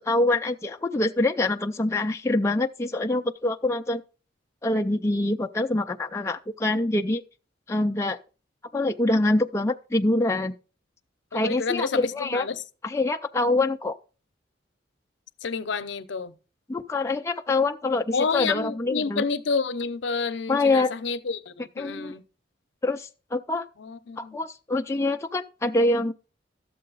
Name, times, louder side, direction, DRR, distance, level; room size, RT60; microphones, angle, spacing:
voice 1, 0.0-4.0 4.6-7.2 7.7-8.2 8.7-10.6 11.3-12.5 12.8-14.0 16.7-19.3 20.5-20.9 21.8-22.2 22.8-23.6 24.2-26.1, left 2 dB, 15° left, 0.4 m, -25 dB
voice 2, 11.3-12.0 12.3-12.5 15.4-16.3 18.1-22.2 23.8-24.4, left 4 dB, 70° left, 0.6 m, -29 dB
12.5 x 7.5 x 3.9 m
head